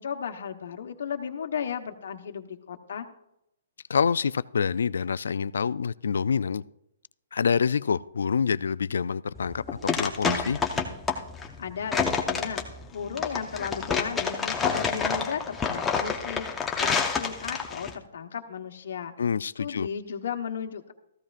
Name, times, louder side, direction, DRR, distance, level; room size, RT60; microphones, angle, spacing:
voice 1, 0.0-3.1 11.6-12.6 12.9-19.1 19.6-20.9, left 7 dB, 65° left, 5 dB, 1.1 m, -35 dB
voice 2, 3.9-6.6 7.3-10.6 19.2-19.9, left 6 dB, 85° left, 18 dB, 0.3 m, -26 dB
sound 1, 9.4-17.9, left 5 dB, 10° left, 0.6 m, -28 dB
14.5 x 13.5 x 2.5 m, 0.82 s
hypercardioid pair, 170°, 0 cm